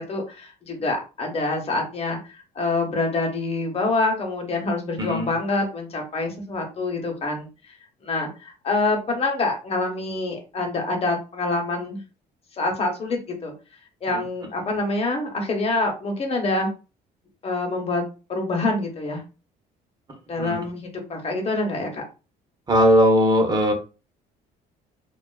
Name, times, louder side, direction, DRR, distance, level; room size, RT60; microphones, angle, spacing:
voice 1, 0.0-7.5 8.0-12.0 12.6-13.5 14.0-16.7 17.4-18.0 18.3-19.2 20.3-22.0, left 2 dB, 35° left, 1 dB, 0.9 m, -26 dB
voice 2, 5.0-5.3 20.4-20.6 22.7-23.7, equal, 25° right, 2 dB, 0.9 m, -18 dB
2.4 x 2.4 x 2.3 m, 0.32 s
cardioid pair, 110°, 17 cm